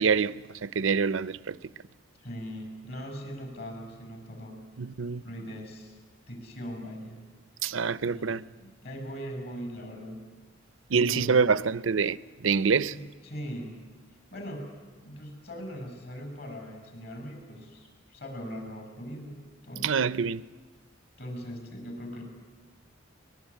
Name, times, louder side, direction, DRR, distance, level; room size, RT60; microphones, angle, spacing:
voice 1, 0.0-1.6 4.8-5.2 7.6-8.4 10.9-13.0 19.8-20.4, right 5 dB, 80° right, 0.7 m, -26 dB
voice 2, 2.2-4.6 5.2-6.0 6.3-7.2 7.6-7.7 8.0-10.2 10.9-11.6 12.9-13.8 14.3-19.9 21.2-22.2, equal, 55° left, 7.1 m, -40 dB
22.5 x 21.0 x 9.9 m
head